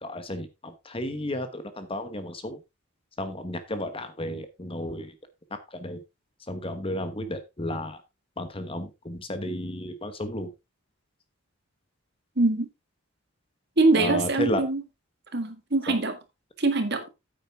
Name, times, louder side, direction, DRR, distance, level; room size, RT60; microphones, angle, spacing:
voice 1, 0.0-2.6 3.2-5.2 5.7-6.0 6.5-8.0 8.4-10.5 13.9-14.7 15.9-16.0, left 1 dB, 25° left, 1.1 m, -33 dB
voice 2, 12.4-12.7 13.8-14.8 15.3-16.1 16.6-17.1, right 2 dB, 50° right, 1.9 m, -23 dB
9.2 x 8.9 x 3.6 m
head